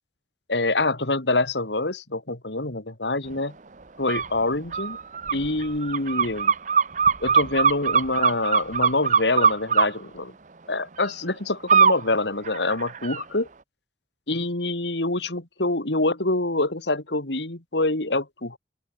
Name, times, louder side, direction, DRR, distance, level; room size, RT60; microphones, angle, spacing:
voice 1, 0.5-3.5 4.0-5.0 5.3-6.5 7.2-10.3 10.7-13.5 14.3-18.6, left 2 dB, 85° left, 3.1 m, -26 dB
sound 1, 4.1-4.3 4.7-9.9 11.7-12.0 12.4-13.2, right 6 dB, 45° right, 0.9 m, -21 dB
open air
head